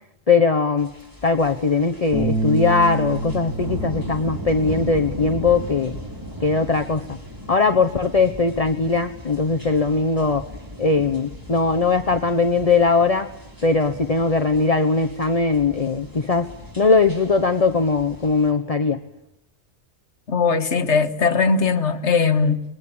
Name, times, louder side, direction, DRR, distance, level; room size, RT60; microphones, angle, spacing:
voice 1, 0.3-0.9 1.2-6.0 6.4-7.2 7.5-10.4 10.8-13.3 13.6-19.0, left 4 dB, 35° left, 1.1 m, -20 dB
sound 1, 0.8-18.5, equal, 15° right, 5.3 m, -37 dB
sound 2, 2.1-8.4, right 2 dB, ahead, 4.7 m, -30 dB
voice 2, 20.3-22.6, left 5 dB, 80° left, 1.8 m, -19 dB
27.0 x 21.5 x 8.9 m
omnidirectional pair, 1.2 m